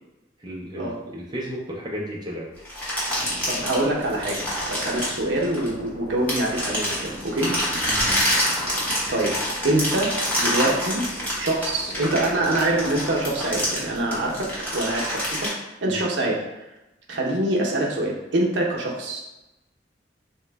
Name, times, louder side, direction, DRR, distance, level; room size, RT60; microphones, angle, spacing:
voice 1, 0.4-2.5 7.8-8.1 15.9-16.0, equal, 25° right, -3 dB, 0.4 m, -33 dB
sound 1, 2.6-5.9 6.3-15.5, equal, 10° left, 0.9 m, -26 dB
sound 2, 3.0-14.6, equal, 55° left, 0.7 m, -41 dB
voice 2, 3.4-4.4 4.7-7.5 9.1-9.3 9.6-11.1 11.4-15.5 15.8-16.4 17.1-19.2, right 1 dB, 80° right, -1 dB, 0.6 m, -25 dB
2.9 x 2.0 x 3.3 m, 0.99 s
head